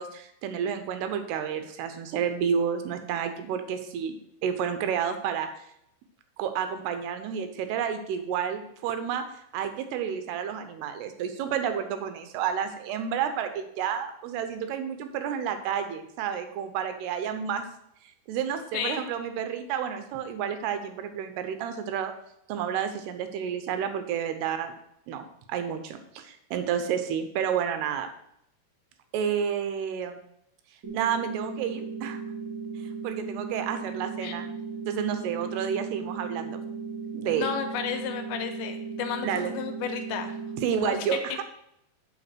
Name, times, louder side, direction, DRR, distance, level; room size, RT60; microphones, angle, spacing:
voice 1, 0.0-5.5 6.4-9.2 9.5-17.6 18.3-22.1 22.5-24.7 25.1-28.1 29.1-30.2 30.9-32.2 33.0-34.5 34.9-36.6 37.1-37.5 39.2-39.5 40.6-41.4, right 8 dB, 85° right, 8 dB, 2.8 m, -30 dB
sound 1, 30.8-40.8, right 5 dB, 40° right, 1.9 m, -36 dB
voice 2, 37.4-40.3 40.9-41.2, left 8 dB, 80° left, 6 dB, 2.5 m, -32 dB
6.9 x 4.9 x 6.1 m, 0.76 s
omnidirectional pair, 4.7 m